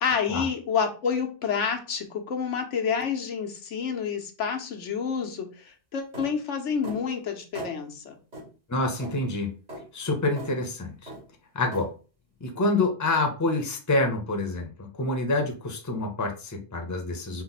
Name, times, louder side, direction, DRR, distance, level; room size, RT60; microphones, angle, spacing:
voice 1, 0.0-8.2, left 6 dB, 85° left, 4 dB, 1.1 m, -29 dB
sound 1, 6.1-6.3 6.8-7.0 7.5-7.7 8.3-8.5 9.0-9.2 9.7-9.8 10.4-10.5 11.1-11.2 11.7-11.9, right 1 dB, 75° right, 2.9 m, -38 dB
voice 2, 8.7-9.5 9.9-11.1 11.5-11.9 12.4-17.4, left 2 dB, 20° left, 4 dB, 0.7 m, -27 dB
5.6 x 2.2 x 4.0 m, 0.36 s
omnidirectional pair, 1.2 m